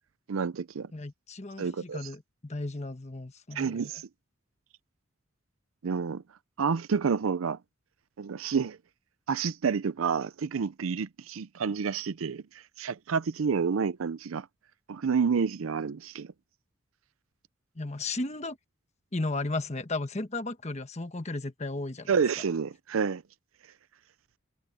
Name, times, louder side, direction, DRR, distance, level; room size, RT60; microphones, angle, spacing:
voice 1, 0.3-0.9 1.6-2.1 3.5-4.1 5.8-6.2 6.6-7.6 8.2-8.8 9.3-12.4 12.8-14.5 14.9-16.3 22.1-23.2, right 6 dB, 90° right, 0.5 m, -29 dB
voice 2, 0.9-3.8 17.8-18.6 19.1-22.1, left 2 dB, 35° left, 1.3 m, -34 dB
head